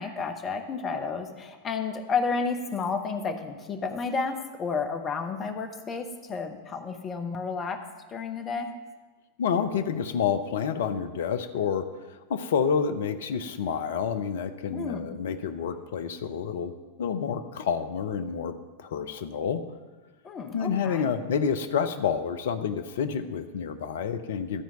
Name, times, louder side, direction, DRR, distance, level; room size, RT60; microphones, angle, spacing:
voice 1, 0.0-7.8 8.1-8.7 14.7-15.2 20.2-21.1, left 5 dB, 25° left, 5 dB, 0.9 m, -31 dB
voice 2, 9.4-16.7 17.0-19.6 20.5-24.6, left 7 dB, 60° left, 9 dB, 0.6 m, -29 dB
12.5 x 4.5 x 6.8 m, 1.3 s
figure-of-eight pair, 90°, 0 cm